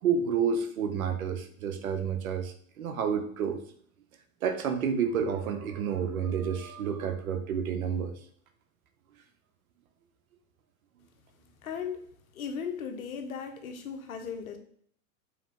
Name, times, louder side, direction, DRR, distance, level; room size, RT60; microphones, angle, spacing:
voice 1, 0.0-3.6 4.4-8.2, right 7 dB, 90° right, 8 dB, 0.7 m, -30 dB
voice 2, 11.6-12.0 12.3-14.6, left 6 dB, 90° left, 7 dB, 0.8 m, -37 dB
3.5 x 3.0 x 3.8 m, 0.64 s
hypercardioid pair, 110°, 41 cm